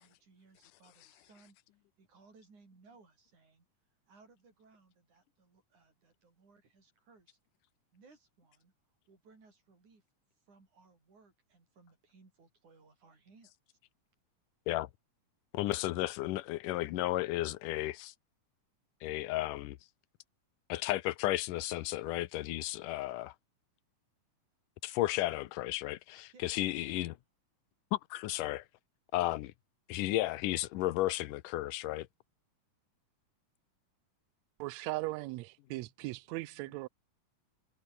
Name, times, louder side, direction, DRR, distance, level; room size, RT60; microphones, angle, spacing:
voice 1, 0.0-1.6 2.0-3.7 4.1-7.4 7.9-10.0 10.5-13.8 26.3-26.5, right 4 dB, 65° right, 8.3 m, -63 dB
voice 2, 15.5-18.1 19.0-19.8 20.7-23.3 24.8-27.2 27.9-28.7 29.1-29.5 29.9-32.1, left 16 dB, 85° left, 2.4 m, -33 dB
voice 3, 34.6-36.9, right 20 dB, 85° right, 1.5 m, -38 dB
omnidirectional pair, 3.7 m